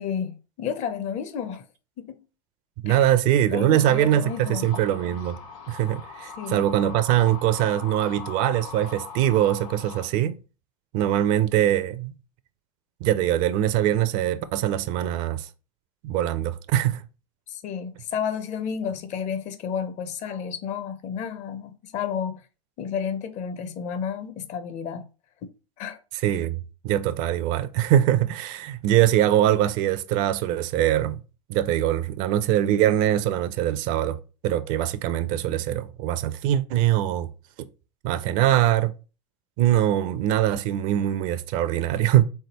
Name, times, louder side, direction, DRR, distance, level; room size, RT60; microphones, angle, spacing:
voice 1, 0.0-1.6 2.0-2.2 2.9-3.1 3.5-4.7 6.4-6.7 17.5-22.4 22.8-25.1 25.8-26.0, left 7 dB, 40° left, 0.7 m, -31 dB
voice 2, 2.8-5.4 5.7-10.4 10.9-12.1 13.0-15.5 16.0-17.0 26.2-31.2 31.5-37.3 38.0-38.9 39.6-42.2, right 12 dB, 50° right, 0.4 m, -22 dB
sound 1, 3.8-10.1, left 5 dB, 70° left, 1.3 m, -41 dB
3.7 x 3.4 x 2.9 m
hypercardioid pair, 90°, 18 cm